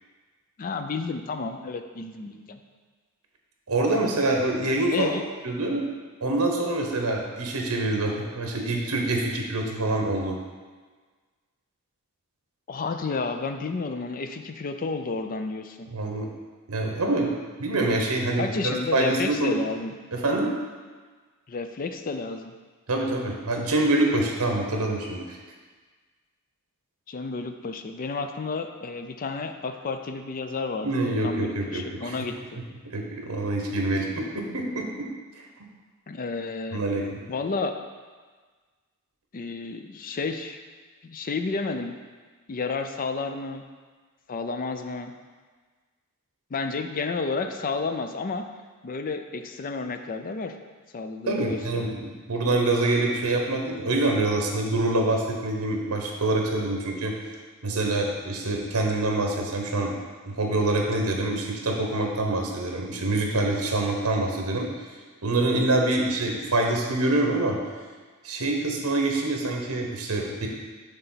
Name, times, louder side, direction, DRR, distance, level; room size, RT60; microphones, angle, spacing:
voice 1, 0.6-2.6 4.9-5.2 12.7-15.9 18.4-19.9 21.5-22.5 27.1-30.9 31.2-32.4 36.1-36.8 37.3-37.8 39.3-40.6 41.0-42.0 42.5-43.6 44.3-45.1 46.5-48.5 48.8-50.6 50.9-51.9, left 4 dB, 40° left, 7 dB, 0.4 m, -31 dB
voice 2, 3.7-5.1 5.4-5.9 6.2-10.4 15.9-16.3 16.7-17.3 17.6-19.5 20.1-20.5 22.9-25.4 30.8-32.2 32.8-34.9 36.7-37.3 51.3-57.2 57.6-60.0 60.3-64.7 65.2-67.6 68.2-70.5, right 2 dB, 70° right, 1 dB, 1.0 m, -25 dB
6.7 x 3.4 x 5.7 m, 1.4 s
head